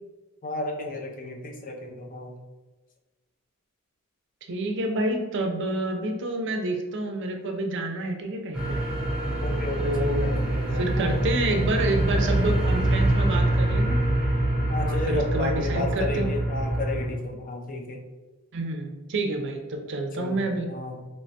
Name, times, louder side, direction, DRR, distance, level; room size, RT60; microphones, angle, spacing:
voice 1, 0.4-2.4 9.4-11.2 14.7-18.0 20.2-21.0, left 2 dB, 40° left, 2 dB, 0.4 m, -33 dB
voice 2, 4.5-8.8 9.8-10.3 10.7-14.0 14.8-16.3 18.5-20.7, right 2 dB, 55° right, 4 dB, 0.5 m, -28 dB
sound 1, 8.5-17.1, right 1 dB, 5° right, 1.0 m, -25 dB
3.2 x 3.0 x 2.7 m, 1.2 s
head